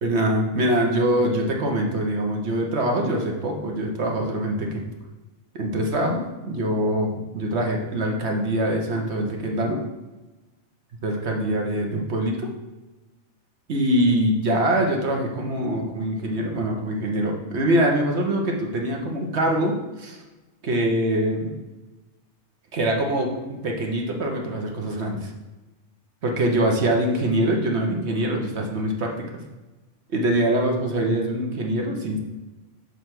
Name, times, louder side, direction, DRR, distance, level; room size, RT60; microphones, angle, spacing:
voice 1, 0.0-4.8 5.5-9.8 11.0-12.5 13.7-20.2 20.6-21.5 22.7-25.3 26.2-29.1 30.1-32.2, right 1 dB, 55° right, 1 dB, 1.2 m, -24 dB
6.8 x 3.3 x 6.0 m, 1.1 s
omnidirectional pair, 1.4 m